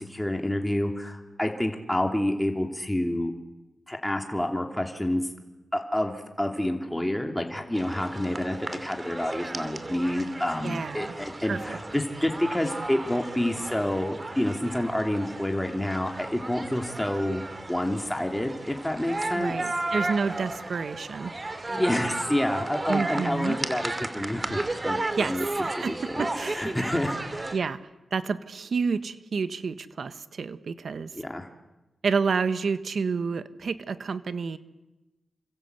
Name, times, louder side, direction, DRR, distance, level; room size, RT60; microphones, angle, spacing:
voice 1, 0.0-3.3 3.9-5.2 5.7-17.4 17.7-19.5 21.7-25.5 25.8-27.6 31.1-31.5, left 1 dB, 10° left, 3 dB, 2.9 m, -28 dB
sound 1, 7.7-27.5, right 2 dB, 30° right, 2.9 m, -34 dB
voice 2, 10.6-11.1 11.4-11.8 19.3-21.3 22.9-23.6 25.2-25.4 25.6-26.7 27.5-27.8 28.1-31.1 32.0-34.6, right 5 dB, 70° right, 12 dB, 1.4 m, -29 dB
29.0 x 25.0 x 8.2 m, 1.1 s
cardioid pair, 65°, 0 cm